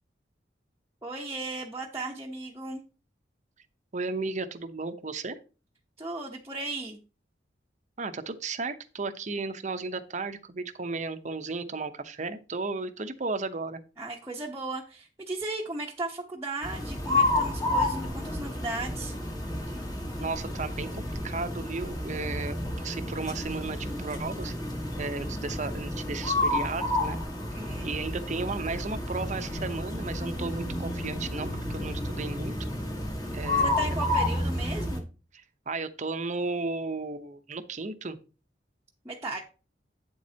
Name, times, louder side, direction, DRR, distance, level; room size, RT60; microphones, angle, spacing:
voice 1, 1.0-2.8 6.0-7.0 14.0-19.1 27.5-27.9 33.6-35.0 39.0-39.4, right 2 dB, 15° right, -4 dB, 0.9 m, -36 dB
voice 2, 3.9-5.4 8.0-13.8 20.2-24.5 25.0-27.2 27.8-32.5 33.3-34.0 35.7-38.2, right 3 dB, 40° right, 9 dB, 0.8 m, -34 dB
sound 1, 16.6-35.0, left 1 dB, 20° left, 1.4 m, -30 dB
8.7 x 7.5 x 2.8 m, 0.34 s
head